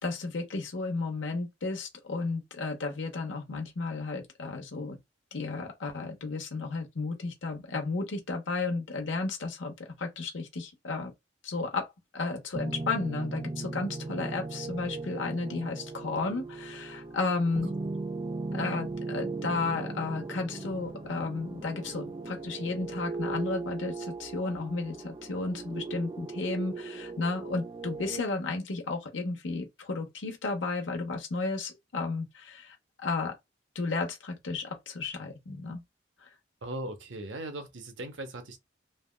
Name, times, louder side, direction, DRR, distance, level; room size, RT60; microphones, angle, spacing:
voice 1, 0.0-5.0 5.3-11.1 11.4-11.9 12.1-17.7 18.5-33.4 33.7-35.8 36.2-36.3, left 3 dB, 85° left, 0.8 m, -33 dB
sound 1, 12.5-28.2, right 3 dB, 25° right, 0.3 m, -38 dB
voice 2, 36.6-38.6, right 1 dB, 80° right, 0.7 m, -38 dB
3.3 x 2.2 x 2.2 m
head